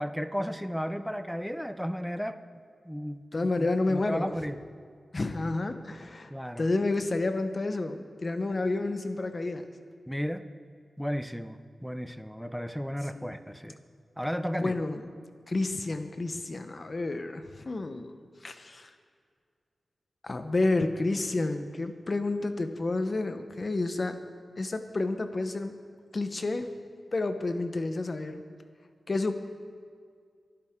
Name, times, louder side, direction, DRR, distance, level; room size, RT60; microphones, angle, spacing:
voice 1, 0.0-2.4 2.8-4.6 6.3-6.7 10.1-10.5 11.0-13.8 14.2-14.8, equal, ahead, 10 dB, 0.6 m, -34 dB
voice 2, 3.3-4.3 5.1-6.3 6.6-9.6 13.1-13.3 14.5-15.0 15.5-18.2 18.4-18.9 20.2-24.2 24.6-25.8 26.1-26.8 27.1-28.4 29.1-29.4, left 2 dB, 35° left, 8 dB, 0.9 m, -30 dB
23.0 x 11.5 x 3.7 m, 2.1 s
wide cardioid pair, 140°, 0 cm